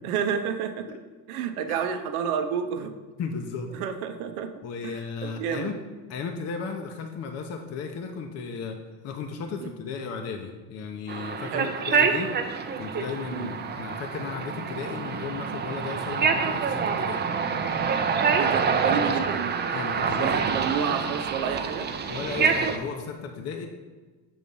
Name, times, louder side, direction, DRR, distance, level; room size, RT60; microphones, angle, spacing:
voice 1, 0.0-0.9 1.3-2.9 3.7-4.5 4.8-5.0 5.2-5.8 9.6-9.7 11.5-11.7 13.3-13.5 18.4-19.6 20.2-21.9, right 7 dB, 85° right, 8 dB, 0.7 m, -30 dB
voice 2, 3.2-3.7 4.6-5.8 6.1-8.8 9.0-12.3 12.8-17.2 19.7-20.6 22.1-23.7, left 5 dB, 35° left, 4 dB, 0.6 m, -35 dB
sound 1, 11.1-22.8, right 5 dB, 25° right, 0.5 m, -26 dB
7.0 x 3.1 x 5.3 m, 1.3 s
supercardioid pair, 95°, 42 cm